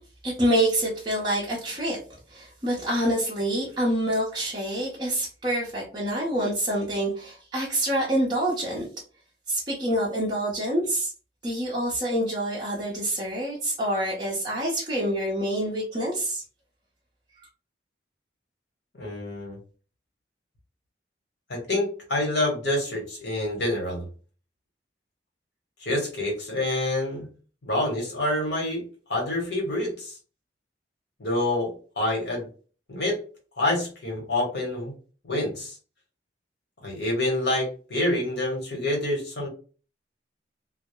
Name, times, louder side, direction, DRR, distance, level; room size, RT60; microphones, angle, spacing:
voice 1, 0.2-2.0 2.3-8.9 9.5-11.1 11.4-16.4, right 1 dB, 25° right, -6 dB, 0.6 m, -26 dB
voice 2, 18.9-19.6 21.5-24.0 25.8-27.3 27.6-28.8 29.1-30.2 31.2-32.5 32.9-33.2 33.6-34.9 35.2-35.8 36.8-39.5, left 1 dB, 70° left, 0 dB, 1.1 m, -27 dB
2.2 x 2.0 x 2.9 m, 0.38 s
head